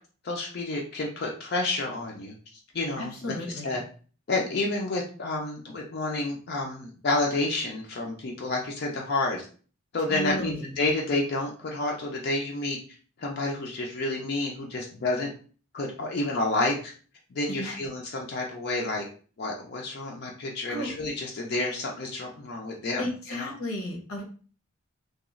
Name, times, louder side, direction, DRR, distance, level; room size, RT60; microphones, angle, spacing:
voice 1, 0.2-2.3 2.7-3.3 3.6-3.8 4.3-9.5 9.9-12.8 13.2-15.3 15.7-16.9 17.3-19.0 19.4-23.0 23.3-23.5, left 2 dB, 50° left, 0 dB, 0.4 m, -29 dB
voice 2, 3.0-3.8 10.1-10.7 17.5-17.8 20.7-20.9 23.0-24.2, left 1 dB, 90° left, 0 dB, 0.9 m, -34 dB
2.9 x 2.3 x 2.4 m, 0.40 s
head